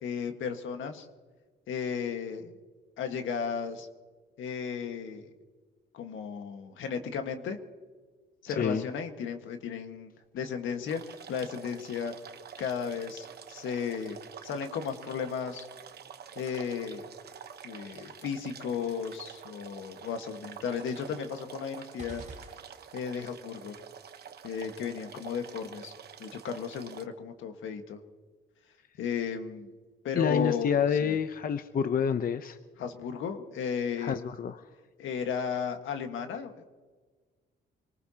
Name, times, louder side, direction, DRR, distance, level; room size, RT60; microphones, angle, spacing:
voice 1, 0.0-1.1 1.7-2.6 3.0-3.9 4.4-5.3 5.9-7.6 8.4-12.1 12.6-15.7 16.3-17.1 17.6-22.2 22.9-23.8 24.4-25.9 26.2-28.0 29.0-29.7 30.0-31.2 32.8-34.2 35.0-36.5, left 6 dB, 80° left, 6 dB, 1.7 m, -34 dB
sound 1, 10.9-27.0, right 8 dB, 55° right, 1.1 m, -48 dB
sound 2, 22.0-23.3, right 3 dB, 35° right, 4.0 m, -48 dB
voice 2, 30.2-32.6 34.0-34.6, left 7 dB, 45° left, 10 dB, 0.7 m, -28 dB
25.5 x 19.0 x 2.9 m, 1.4 s
cardioid pair, 90°, 20 cm